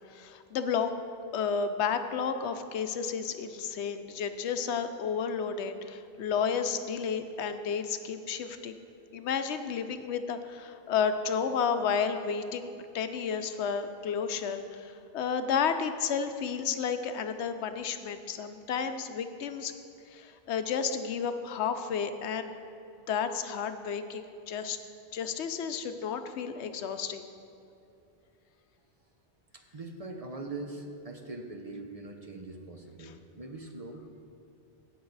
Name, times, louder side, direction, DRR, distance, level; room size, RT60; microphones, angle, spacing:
voice 1, 0.1-0.9 1.3-8.7 9.1-12.7 12.9-19.7 20.1-22.5 23.1-24.8 25.1-27.3 33.0-33.1, left 6 dB, 80° left, 9 dB, 0.9 m, -32 dB
voice 2, 29.5-34.3, right 2 dB, 35° right, 3 dB, 0.8 m, -42 dB
16.5 x 6.4 x 4.0 m, 2.8 s
omnidirectional pair, 1.1 m